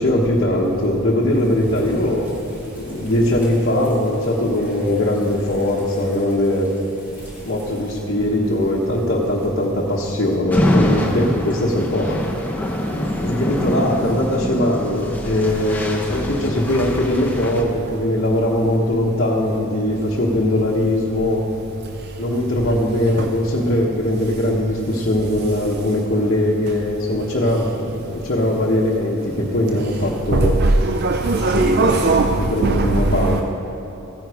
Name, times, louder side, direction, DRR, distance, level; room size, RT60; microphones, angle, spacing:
voice 1, 0.0-2.3 2.7-6.7 7.4-12.2 13.2-21.4 22.2-30.6 31.4-33.4, left 1 dB, 50° left, -6 dB, 1.2 m, -20 dB
sound 1, 1.4-8.0, left 5 dB, 10° right, 2.6 m, -33 dB
sound 2, 10.5-17.6, left 1 dB, 10° left, 0.9 m, -24 dB
voice 2, 30.3-33.4, right 2 dB, 50° right, 5 dB, 0.5 m, -18 dB
15.0 x 9.5 x 4.9 m, 3.0 s
head